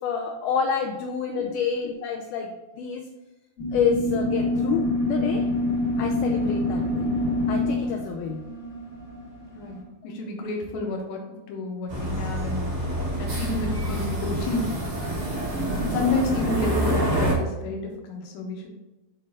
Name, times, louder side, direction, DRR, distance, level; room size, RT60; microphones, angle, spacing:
voice 1, 0.0-3.1 3.7-5.5 6.0-7.2 7.5-8.4, left 6 dB, 80° left, 3 dB, 1.9 m, -28 dB
sound 1, 3.6-9.8, left 1 dB, 40° left, 1.0 m, -26 dB
voice 2, 9.5-12.7 13.2-14.7 15.8-18.7, left 2 dB, 60° left, 1 dB, 2.0 m, -30 dB
sound 2, 11.9-17.3, right 1 dB, 75° right, 0.6 m, -27 dB
8.6 x 3.7 x 3.6 m, 1.1 s
omnidirectional pair, 4.1 m